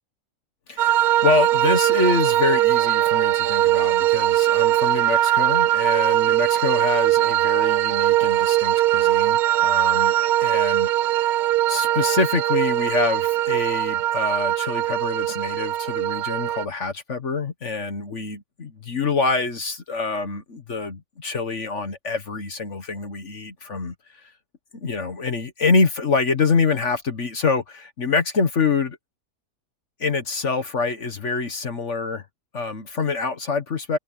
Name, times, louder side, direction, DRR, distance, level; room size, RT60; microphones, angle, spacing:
voice 1, 0.7-10.1 10.4-11.4 11.7-23.9 24.8-29.0 30.0-32.2 32.5-34.0, left 4 dB, 55° left, 1.7 m, -25 dB
sound 1, 0.8-16.6, right 14 dB, 80° right, 1.1 m, -20 dB
omnidirectional pair, 1.6 m